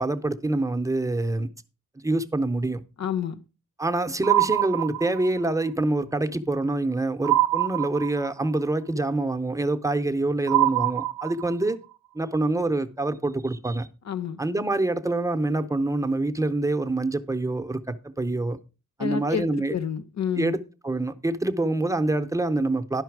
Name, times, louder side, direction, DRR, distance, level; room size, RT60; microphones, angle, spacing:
voice 1, 0.0-1.5 2.0-2.8 3.8-11.8 12.1-13.9 14.4-18.6 19.0-19.7 20.4-23.0, right 2 dB, 10° right, 0.6 m, -26 dB
voice 2, 3.0-3.4 14.1-14.4 19.0-20.5, left 8 dB, 55° left, 0.9 m, -29 dB
sound 1, 4.2-5.5 7.2-8.5 10.5-11.7, right 15 dB, 80° right, 0.5 m, -24 dB
11.5 x 5.6 x 4.6 m
wide cardioid pair, 140°, 33 cm